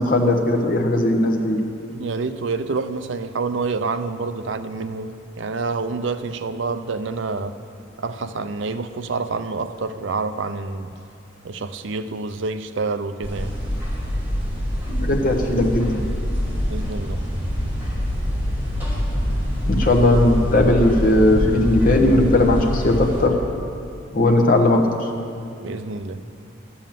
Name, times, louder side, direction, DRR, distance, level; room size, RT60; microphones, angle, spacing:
voice 1, 0.0-1.6 14.9-16.0 19.7-23.4 24.1-25.0, left 1 dB, 45° left, 0 dB, 1.1 m, -18 dB
voice 2, 1.9-7.6 8.0-10.9 11.4-13.5 16.7-17.2 25.6-26.2, right 4 dB, 65° right, 10 dB, 0.5 m, -27 dB
sound 1, 13.2-23.2, equal, 10° right, 2.9 m, -25 dB
12.5 x 7.1 x 7.4 m, 2.5 s
head